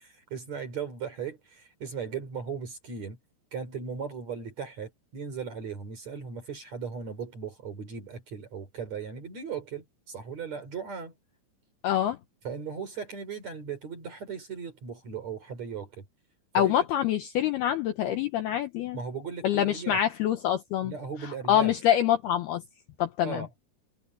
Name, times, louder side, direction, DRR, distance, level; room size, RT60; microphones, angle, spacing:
voice 1, 0.0-3.2 3.5-11.1 12.4-16.0 16.5-16.7 18.9-20.0 20.8-21.7 23.2-23.5, right 6 dB, 35° right, 4.0 m, -37 dB
voice 2, 11.8-12.2 16.5-19.0 19.4-20.9 21.5-22.6 23.0-23.5, left 11 dB, 85° left, 2.3 m, -25 dB
omnidirectional pair, 5.9 m